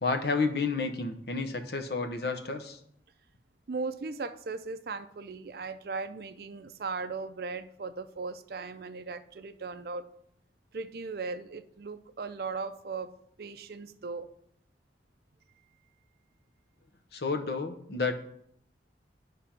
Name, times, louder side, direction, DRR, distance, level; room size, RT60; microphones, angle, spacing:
voice 1, 0.0-2.8 17.1-18.1, left 4 dB, 60° left, 6 dB, 0.8 m, -30 dB
voice 2, 3.7-10.1 10.7-14.3, right 4 dB, 55° right, 11 dB, 0.4 m, -38 dB
10.0 x 3.4 x 5.8 m, 0.72 s
head